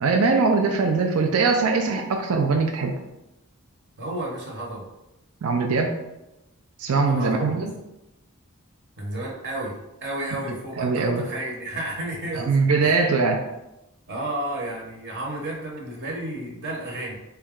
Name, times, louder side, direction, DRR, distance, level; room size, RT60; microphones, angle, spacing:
voice 1, 0.0-2.9 5.4-6.0 6.8-7.7 10.8-11.2 12.3-13.4, right 4 dB, 75° right, 3 dB, 0.4 m, -21 dB
voice 2, 4.0-4.9 6.9-7.7 9.0-12.5 12.8-13.0 14.1-17.1, right 1 dB, 50° right, -2 dB, 0.9 m, -32 dB
4.0 x 2.3 x 3.6 m, 0.93 s
head